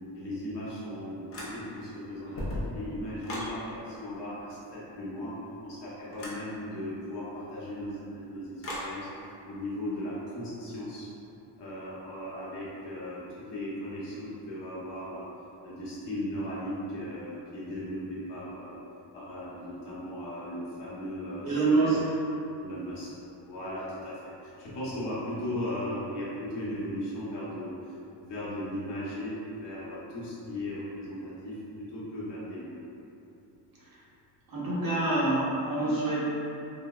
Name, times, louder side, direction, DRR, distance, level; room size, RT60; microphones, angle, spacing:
voice 1, 0.1-5.4 5.6-11.1 11.6-15.2 15.6-18.8 19.1-21.9 22.6-23.1 23.4-27.7 28.2-32.7, left 1 dB, 65° left, -9 dB, 0.9 m, -37 dB
sound 1, 1.3-1.9 2.2-3.6 6.1-6.4 8.6-8.9, left 1 dB, 35° left, 0.5 m, -36 dB
voice 2, 21.4-22.0 34.5-36.2, right 3 dB, 50° right, -8 dB, 0.6 m, -26 dB
3.3 x 2.0 x 2.2 m, 2.8 s
wide cardioid pair, 180°, 44 cm